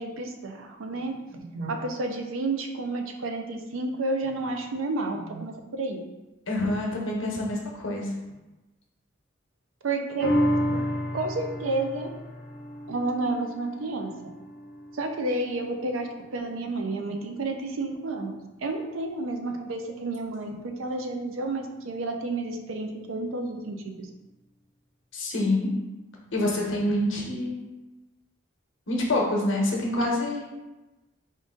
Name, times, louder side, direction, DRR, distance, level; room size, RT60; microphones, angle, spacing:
voice 1, 0.0-6.0 9.8-10.3 10.7-12.1 12.9-14.1 14.9-24.1, right 2 dB, 85° right, 4 dB, 0.5 m, -31 dB
voice 2, 6.5-8.1 25.1-25.7 26.3-27.6 28.9-30.4, left 1 dB, 75° left, -2 dB, 0.9 m, -26 dB
sound 1, 10.2-16.9 17.3-17.4, equal, 50° left, 0.7 m, -31 dB
3.7 x 2.5 x 3.7 m, 1.1 s
head